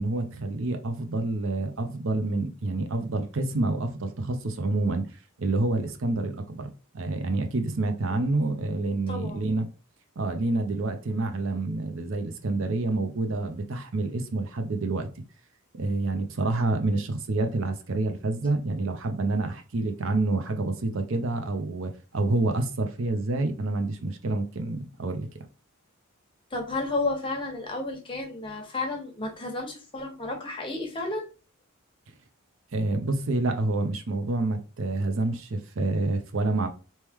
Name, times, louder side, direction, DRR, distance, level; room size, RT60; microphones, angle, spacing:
voice 1, 0.0-5.0 5.4-6.7 6.9-9.7 10.2-15.1 15.7-25.4 32.7-36.7, right 2 dB, 60° right, 0.6 m, -28 dB
voice 2, 9.1-9.4 26.5-31.2, left 2 dB, 25° left, 1.2 m, -32 dB
4.3 x 3.1 x 3.5 m
head